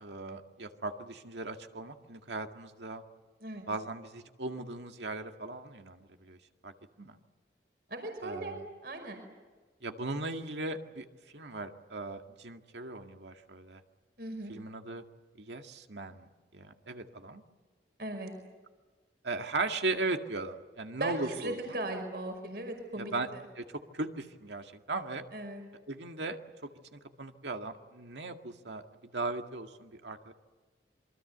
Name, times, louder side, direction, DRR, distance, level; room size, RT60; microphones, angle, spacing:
voice 1, 0.0-3.0 3.7-6.4 6.6-6.7 7.0-7.2 8.2-8.6 9.8-11.1 11.3-13.8 14.5-15.0 15.4-16.3 16.5-17.4 19.2-21.6 23.0-23.3 23.6-25.2 25.9-30.3, right 2 dB, 85° right, 5 dB, 2.0 m, -38 dB
voice 2, 7.9-9.2 14.2-14.6 18.0-18.3 21.0-23.4 25.3-25.6, right 2 dB, 60° right, 5 dB, 5.5 m, -38 dB
27.5 x 23.5 x 8.1 m, 1.4 s
head